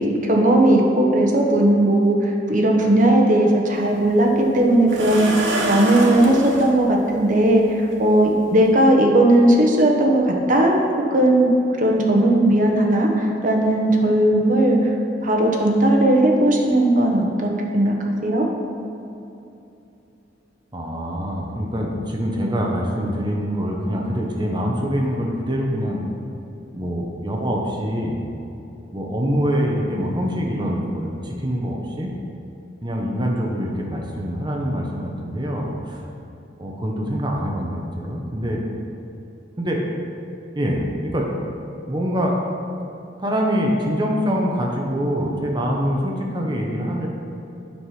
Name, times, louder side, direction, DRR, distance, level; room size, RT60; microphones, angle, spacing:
voice 1, 0.0-10.8 11.1-11.5 11.8-14.8 15.2-17.9 18.2-18.4, right 1 dB, 45° right, 0 dB, 1.1 m, -17 dB
sound 1, 3.8-3.9 4.9-6.7 7.9-8.0 8.5-8.7, right 1 dB, 80° right, 1.4 m, -25 dB
voice 2, 20.7-26.1 26.7-28.2 28.9-32.1 32.8-36.0 36.6-38.6 39.6-39.8 40.5-41.3 41.9-42.3 43.2-47.1, equal, 25° right, -1 dB, 1.0 m, -24 dB
8.5 x 6.0 x 4.9 m, 2.8 s
head